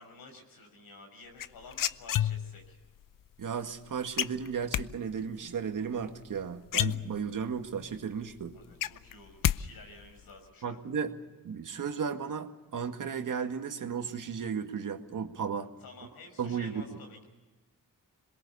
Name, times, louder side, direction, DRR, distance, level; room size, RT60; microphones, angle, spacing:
voice 1, 0.0-2.8 8.5-10.8 15.8-17.2, left 3 dB, 90° left, 4 dB, 6.2 m, -52 dB
sound 1, 1.4-2.7 4.2-4.9 6.3-6.4 6.7-7.5 7.9-8.0 8.3-9.6 9.8-10.3, left 11 dB, 70° left, 0.7 m, -29 dB
voice 2, 3.4-8.6 10.6-11.1 11.4-15.7 16.4-16.8, right 6 dB, 65° right, 6 dB, 2.0 m, -34 dB
27.0 x 21.5 x 7.0 m, 1.2 s
cardioid pair, 90°, 34 cm